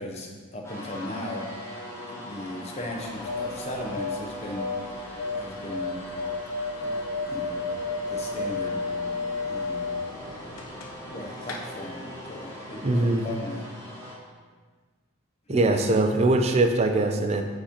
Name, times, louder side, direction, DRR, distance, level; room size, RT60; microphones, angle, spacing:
voice 1, 0.0-1.4 2.1-4.7 5.3-6.0 6.8-7.0 7.3-7.7 8.1-8.8 9.4-10.0 11.1-13.6 15.5-15.7, left 1 dB, 30° left, 0 dB, 0.7 m, -37 dB
sound 1, 0.6-14.1, left 1 dB, 10° left, 1.2 m, -40 dB
sound 2, 2.9-11.1 11.4-11.6, left 3 dB, 60° left, 0.7 m, -32 dB
voice 2, 12.8-13.2 15.5-17.4, right 2 dB, 30° right, 6 dB, 0.4 m, -22 dB
4.9 x 4.2 x 5.1 m, 1.4 s
head